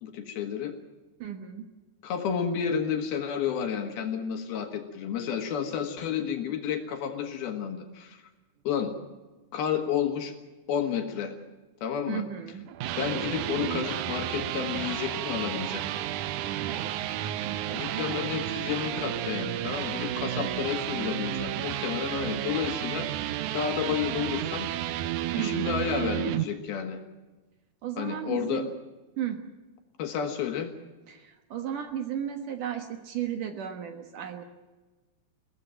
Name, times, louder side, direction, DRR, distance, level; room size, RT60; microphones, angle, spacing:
voice 1, 0.0-0.8 2.0-8.2 8.7-8.9 9.5-10.4 10.7-11.3 11.8-12.3 13.0-15.9 17.7-24.7 25.4-27.0 28.0-28.7 30.0-30.7, left 8 dB, 75° left, 5 dB, 3.5 m, -31 dB
voice 2, 1.2-1.7 12.1-12.7 16.7-17.0 17.5-18.3 20.4-20.6 25.3-25.8 27.8-28.7 29.2-29.4 31.1-34.4, right 9 dB, 60° right, 6 dB, 2.6 m, -35 dB
sound 1, 12.5-26.5, right 13 dB, 80° right, 1.8 m, -32 dB
23.0 x 16.5 x 9.1 m, 1.2 s
omnidirectional pair, 4.5 m